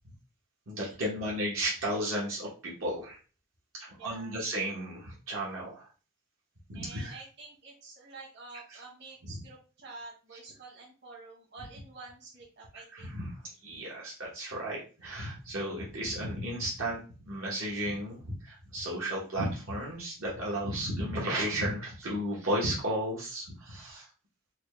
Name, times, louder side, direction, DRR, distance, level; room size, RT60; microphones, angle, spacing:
voice 1, 0.7-3.2 3.7-5.9 6.7-7.2 8.7-8.8 9.2-9.3 12.7-17.0 17.3-24.1, right 1 dB, 70° right, -5 dB, 1.0 m, -34 dB
voice 2, 4.0-4.4 6.7-13.2, right 3 dB, 50° right, -3 dB, 1.2 m, -48 dB
4.1 x 2.2 x 3.1 m, 0.37 s
head